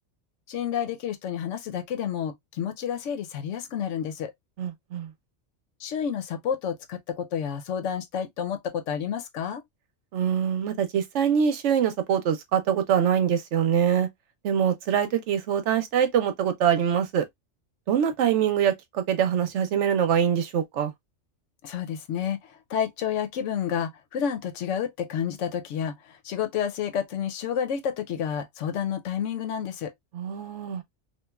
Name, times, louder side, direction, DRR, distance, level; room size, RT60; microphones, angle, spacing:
voice 1, 0.5-4.3 5.8-9.6 21.6-29.9, left 8 dB, 90° left, 1.0 m, -30 dB
voice 2, 4.6-5.1 10.1-14.1 14.4-17.2 17.9-20.9 30.1-30.8, right 8 dB, 75° right, 0.9 m, -24 dB
3.1 x 2.4 x 2.2 m
omnidirectional pair, 1.2 m